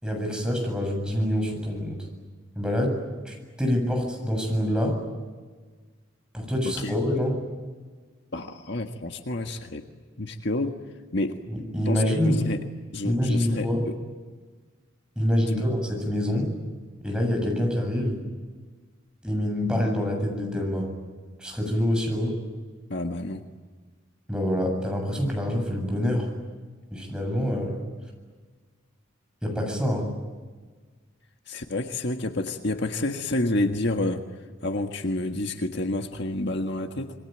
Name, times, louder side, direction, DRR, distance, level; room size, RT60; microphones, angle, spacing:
voice 1, 0.0-2.1 2.6-3.0 3.2-5.0 6.3-7.4 11.5-12.5 13.0-13.8 15.2-16.5 17.0-18.2 19.2-20.9 21.4-22.3 24.3-26.3 26.9-27.8 29.4-30.1, equal, 5° right, 1 dB, 7.6 m, -26 dB
voice 2, 8.3-9.8 10.2-10.8 11.1-11.4 11.9-12.6 12.9-13.9 15.4-15.6 22.9-23.4 31.5-34.2 34.6-37.1, left 2 dB, 60° left, 5 dB, 1.7 m, -29 dB
27.0 x 22.5 x 9.2 m, 1.4 s
head